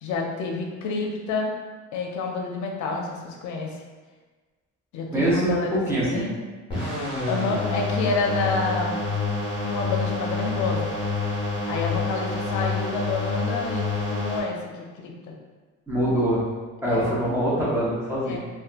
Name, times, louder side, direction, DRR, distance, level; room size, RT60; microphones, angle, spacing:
voice 1, 0.0-1.5 1.9-3.7 4.9-6.3 7.3-9.0 9.6-10.9 11.7-14.6 15.0-15.4 16.9-17.1 18.3-18.4, left 3 dB, 70° left, 1 dB, 0.5 m, -28 dB
voice 2, 5.1-6.2 15.9-16.5 16.8-18.4, right 1 dB, 10° right, -8 dB, 0.7 m, -24 dB
sound 1, 6.7-14.4, left 3 dB, 15° left, 1.0 m, -27 dB
2.7 x 2.2 x 2.4 m, 1.4 s
cardioid pair, 140°, 31 cm